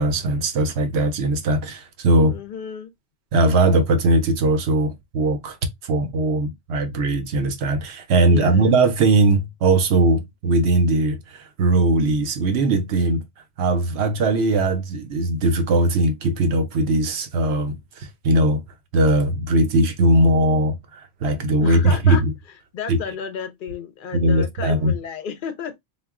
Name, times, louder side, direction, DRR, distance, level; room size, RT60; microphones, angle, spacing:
voice 1, 0.0-2.4 3.3-5.6 5.8-13.2 13.6-18.6 18.9-22.3 22.9-23.0 24.1-24.9, right 2 dB, 75° right, 0.9 m, -19 dB
voice 2, 2.2-2.9 8.3-8.7 21.6-22.2 22.5-25.8, left 7 dB, 60° left, 0.6 m, -33 dB
2.3 x 2.1 x 3.5 m
omnidirectional pair, 1.1 m